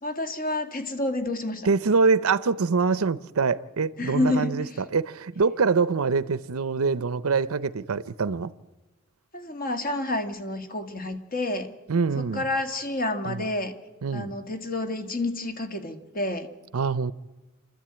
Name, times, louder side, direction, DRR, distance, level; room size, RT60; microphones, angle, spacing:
voice 1, 0.0-1.7 4.0-4.7 9.3-11.7 12.2-13.7 14.1-16.5, left 2 dB, 40° left, 1.9 m, -29 dB
voice 2, 1.6-8.5 11.9-12.4 13.3-13.4 14.0-14.3 16.7-17.1, right 4 dB, 85° right, 0.6 m, -24 dB
28.5 x 13.0 x 8.8 m
head